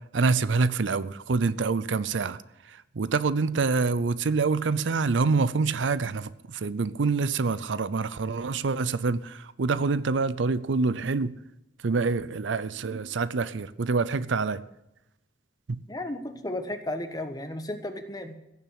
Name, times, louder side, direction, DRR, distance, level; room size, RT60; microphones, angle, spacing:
voice 1, 0.1-2.4 2.7-11.4 11.8-14.6 15.7-15.8, right 4 dB, 80° right, 0.6 m, -26 dB
voice 2, 15.9-18.3, left 1 dB, 20° left, 1.3 m, -34 dB
16.0 x 7.3 x 8.6 m
head